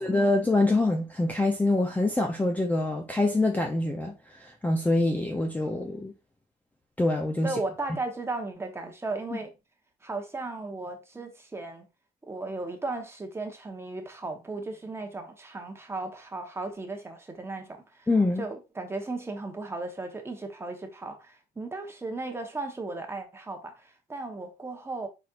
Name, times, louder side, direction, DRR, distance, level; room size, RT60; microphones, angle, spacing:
voice 1, 0.0-6.1 7.0-7.5 9.3-9.4 18.1-18.4, left 2 dB, 10° left, 0.6 m, -25 dB
voice 2, 7.4-9.5 10.0-11.8 12.2-18.1 18.4-25.1, right 3 dB, 15° right, 1.0 m, -36 dB
4.2 x 4.2 x 2.4 m
cardioid pair, 110°, 17 cm